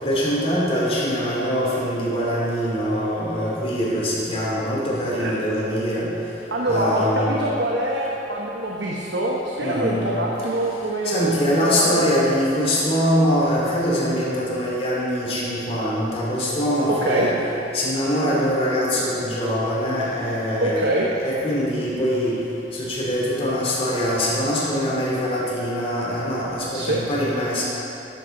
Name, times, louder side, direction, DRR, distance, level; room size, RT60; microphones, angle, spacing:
voice 1, 0.0-6.1 6.6-7.3 9.6-10.1 11.0-17.3 17.7-20.9 21.2-22.3 22.7-27.6, equal, 35° left, -6 dB, 3.0 m, -23 dB
voice 2, 6.5-12.0 17.0-17.3 20.6-21.1 26.7-27.0, right 1 dB, 75° right, -3 dB, 1.1 m, -24 dB
13.0 x 10.5 x 3.9 m, 2.9 s
head